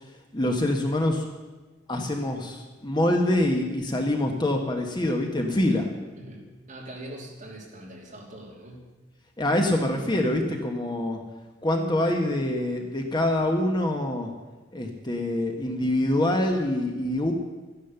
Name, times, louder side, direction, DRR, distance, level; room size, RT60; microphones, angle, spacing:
voice 1, 0.3-1.3 1.9-5.9 9.4-11.2 11.6-14.3 14.7-17.3, left 1 dB, 25° left, 3 dB, 1.2 m, -25 dB
voice 2, 6.1-8.8, right 1 dB, 40° right, -2 dB, 2.9 m, -42 dB
13.0 x 10.5 x 7.0 m, 1.2 s
head